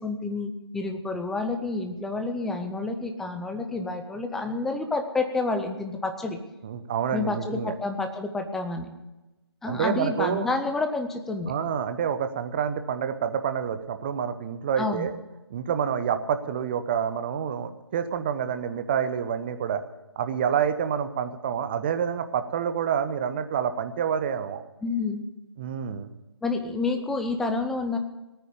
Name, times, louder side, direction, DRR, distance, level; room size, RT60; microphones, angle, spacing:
voice 1, 0.0-6.4 7.1-8.9 9.6-11.5 14.8-15.1 24.8-25.2 26.4-28.0, left 3 dB, ahead, 5 dB, 0.5 m, -29 dB
voice 2, 6.6-7.7 9.7-10.5 11.5-15.1 15.5-19.8 20.2-24.6 25.6-26.2, right 8 dB, 25° right, 10 dB, 0.9 m, -28 dB
18.0 x 9.3 x 6.9 m, 1.0 s
figure-of-eight pair, 150°, 14 cm